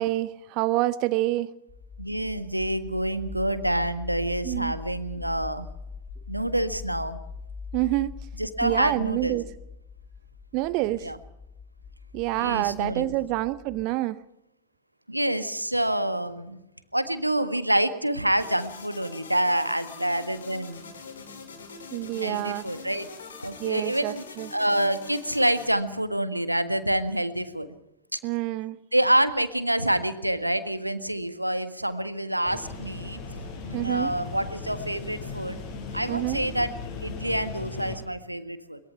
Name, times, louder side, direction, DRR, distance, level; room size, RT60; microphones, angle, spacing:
voice 1, 0.0-1.5 4.4-4.7 7.7-8.2 8.6-9.5 10.5-11.1 12.1-14.2 21.9-22.7 23.6-24.5 28.2-28.8 33.7-34.1 36.1-36.4, right 18 dB, 45° right, 16 dB, 0.8 m, -27 dB
sound 1, 1.7-13.8, left 5 dB, 30° left, 2.1 m, -42 dB
voice 2, 2.0-5.7 6.3-7.2 8.4-9.4 11.0-11.2 12.4-13.1 15.1-16.6 16.9-20.9 22.1-23.1 23.4-24.2 24.5-27.7 28.1-28.2 28.9-33.2 33.6-35.6 35.9-36.7 37.0-38.8, right 1 dB, 90° right, 12 dB, 1.5 m, -27 dB
sound 2, 18.4-25.7, left 5 dB, 70° left, 4.6 m, -44 dB
sound 3, 32.4-38.0, left 4 dB, 45° left, 7.6 m, -37 dB
23.0 x 21.5 x 5.8 m, 0.86 s
figure-of-eight pair, 90°, 0 cm